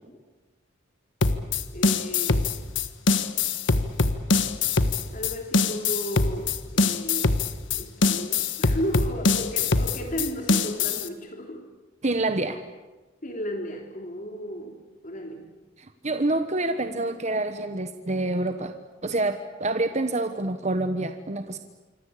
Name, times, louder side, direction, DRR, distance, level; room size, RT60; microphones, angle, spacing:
sound 1, 1.2-11.1, left 3 dB, 65° left, 1.5 m, -23 dB
voice 1, 1.7-2.5 5.1-7.3 7.7-11.7 13.2-15.5, equal, 40° left, 3 dB, 3.0 m, -34 dB
voice 2, 12.0-12.6 15.8-18.7 19.0-21.6, right 2 dB, 35° right, 8 dB, 1.2 m, -27 dB
26.5 x 24.5 x 8.5 m, 1.2 s
head